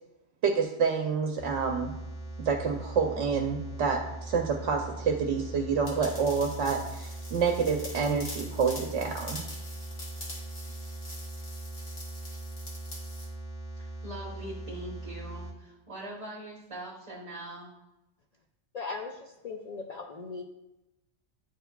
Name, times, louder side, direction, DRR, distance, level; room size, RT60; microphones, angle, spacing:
voice 1, 0.4-1.9 2.4-9.4, right 5 dB, 75° right, 3 dB, 0.9 m, -28 dB
sound 1, 1.4-15.5, right 2 dB, 10° left, 0.5 m, -41 dB
sound 2, 5.9-13.3, left 2 dB, 55° left, 1.5 m, -44 dB
voice 2, 13.8-17.8, right 1 dB, 30° right, -4 dB, 0.9 m, -42 dB
voice 3, 18.7-19.1 19.4-20.4, left 4 dB, 90° left, 2 dB, 0.3 m, -37 dB
9.3 x 4.5 x 2.2 m, 0.93 s
omnidirectional pair, 1.3 m